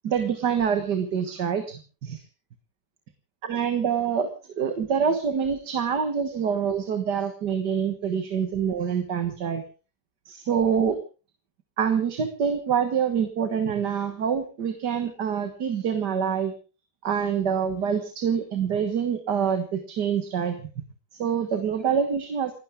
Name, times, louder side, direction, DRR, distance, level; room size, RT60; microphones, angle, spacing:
voice 1, 0.0-2.2 3.4-4.3 4.6-9.6 10.3-11.0 11.8-16.5 17.0-20.6 21.2-22.6, right 7 dB, 90° right, 7 dB, 2.1 m, -26 dB
30.0 x 11.5 x 3.6 m, 0.35 s
omnidirectional pair, 1.7 m